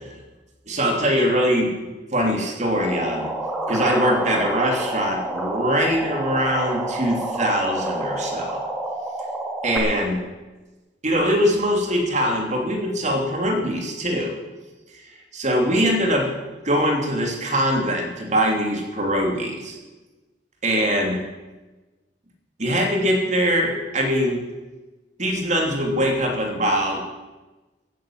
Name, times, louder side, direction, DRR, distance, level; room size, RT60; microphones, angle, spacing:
voice 1, 0.7-3.3 3.7-8.6 9.6-10.2 11.0-14.4 15.3-16.3 16.6-19.8 20.6-21.2 22.6-24.4 25.2-27.0, equal, 40° right, 2 dB, 2.9 m, -22 dB
sound 1, 2.8-9.8, right 1 dB, ahead, 2.4 m, -28 dB
15.0 x 9.8 x 7.5 m, 1.2 s
head